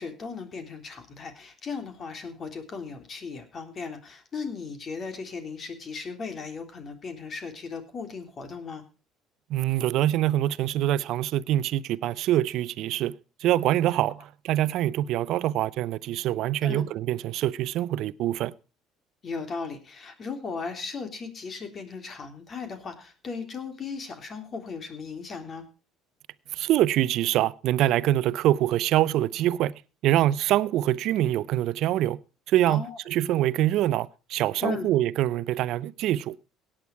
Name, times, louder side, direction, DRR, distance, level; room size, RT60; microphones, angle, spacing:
voice 1, 0.0-8.8 16.6-16.9 19.2-25.6 32.7-33.0 34.6-34.9, left 4 dB, 40° left, 3.5 m, -36 dB
voice 2, 9.5-13.1 13.4-18.5 26.5-29.7 30.0-32.2 32.5-36.4, right 13 dB, 65° right, 0.6 m, -25 dB
17.5 x 9.0 x 4.6 m
supercardioid pair, 80°, 0 cm